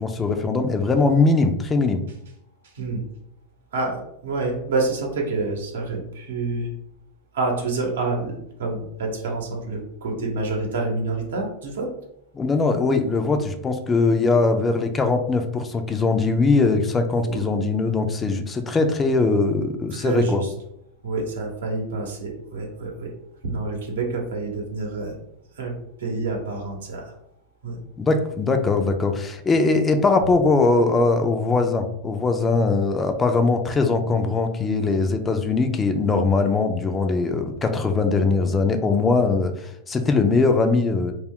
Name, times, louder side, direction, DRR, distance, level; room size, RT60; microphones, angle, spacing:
voice 1, 0.0-2.0 12.4-20.4 28.0-41.1, left 3 dB, 20° left, 6 dB, 0.3 m, -21 dB
voice 2, 2.6-3.0 3.7-6.7 7.3-11.9 17.2-17.4 19.9-20.5 21.0-23.1 23.4-25.1 25.5-27.1 27.6-27.8, right 3 dB, 80° right, 1 dB, 0.8 m, -28 dB
2.3 x 2.1 x 3.5 m, 0.77 s
hypercardioid pair, 110°, 0 cm